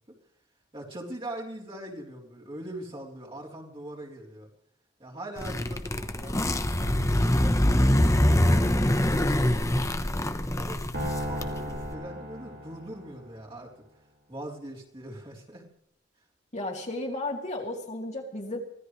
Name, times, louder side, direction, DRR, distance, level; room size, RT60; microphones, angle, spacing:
voice 1, 0.7-4.5 5.0-8.8 9.0-9.9 10.6-13.7 14.3-15.7, right 1 dB, 30° right, -3 dB, 3.8 m, -42 dB
sound 1, 5.4-11.9, left 1 dB, 15° left, 1.1 m, -24 dB
sound 2, 10.9-13.3, equal, 70° right, 5.7 m, -35 dB
voice 2, 16.5-18.6, left 2 dB, 40° left, 0 dB, 2.8 m, -33 dB
25.0 x 17.0 x 3.3 m, 0.77 s
head